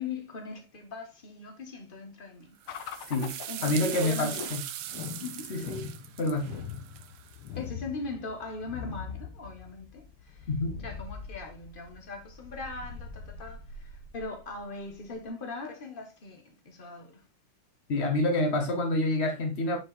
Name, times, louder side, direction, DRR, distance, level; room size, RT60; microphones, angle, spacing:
voice 1, 0.0-2.6 3.5-4.5 5.2-5.6 7.5-10.5 10.8-17.2, left 3 dB, 30° left, 1.1 m, -40 dB
sound 1, 2.6-7.5, right 11 dB, 80° right, 1.6 m, -40 dB
sound 2, 2.7-15.3, left 6 dB, 80° left, 1.7 m, -42 dB
voice 2, 3.6-4.6 5.5-5.8 6.2-6.5 10.5-10.8 17.9-19.8, left 2 dB, 65° left, 0.6 m, -27 dB
6.0 x 4.9 x 4.0 m
omnidirectional pair, 2.4 m